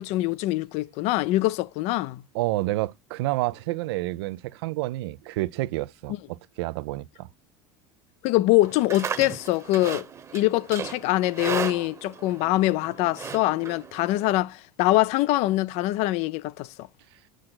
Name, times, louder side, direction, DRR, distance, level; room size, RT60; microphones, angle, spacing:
voice 1, 0.0-2.2 8.2-10.1 10.3-16.9, left 17 dB, 55° left, 0.4 m, -24 dB
voice 2, 2.3-7.3, right 18 dB, 85° right, 0.4 m, -29 dB
Livestock farm animals working animals, 8.6-14.3, right 6 dB, 20° right, 0.9 m, -36 dB
6.4 x 6.2 x 3.9 m
supercardioid pair, 125°, 13 cm